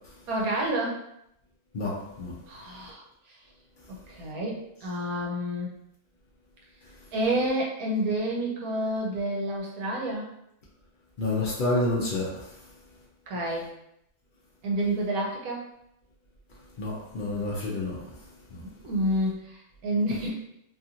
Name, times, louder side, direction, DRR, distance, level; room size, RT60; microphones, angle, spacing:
voice 1, 0.3-1.0 2.5-3.4 3.9-5.8 7.1-10.3 13.3-13.7 14.6-15.6 18.6-20.4, right 1 dB, 70° right, -2 dB, 1.2 m, -29 dB
voice 2, 1.7-2.3 11.2-12.3 16.8-18.0 18.5-18.6, left 2 dB, 75° left, -5 dB, 0.4 m, -28 dB
2.9 x 2.5 x 2.8 m, 0.79 s
omnidirectional pair, 1.6 m